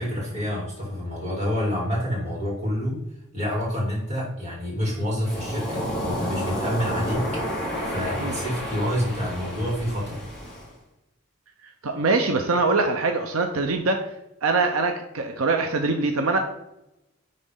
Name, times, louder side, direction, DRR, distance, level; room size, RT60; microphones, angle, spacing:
voice 1, 0.0-3.0 3.3-7.4 7.8-10.2, equal, 30° right, -4 dB, 2.9 m, -28 dB
Waves surf, 5.2-10.7, equal, 5° left, 2.0 m, -31 dB
voice 2, 11.8-14.0 14.4-16.4, right 3 dB, 80° right, 5 dB, 0.7 m, -23 dB
10.5 x 4.0 x 3.8 m, 0.88 s
head